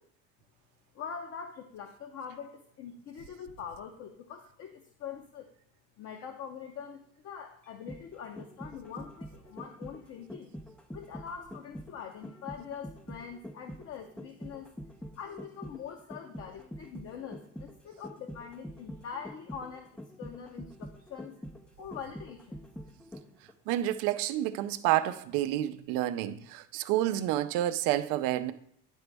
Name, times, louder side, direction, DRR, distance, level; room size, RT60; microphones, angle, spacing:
voice 1, 0.9-5.5 6.0-10.5 10.9-14.7 15.2-21.4 21.8-22.6, left 7 dB, 50° left, 0.7 m, -44 dB
sound 1, 7.6-23.5 23.8-23.9, equal, 5° left, 0.3 m, -45 dB
voice 2, 23.7-28.5, right 13 dB, 85° right, 0.6 m, -29 dB
10.0 x 4.0 x 3.4 m
cardioid pair, 135°, 32 cm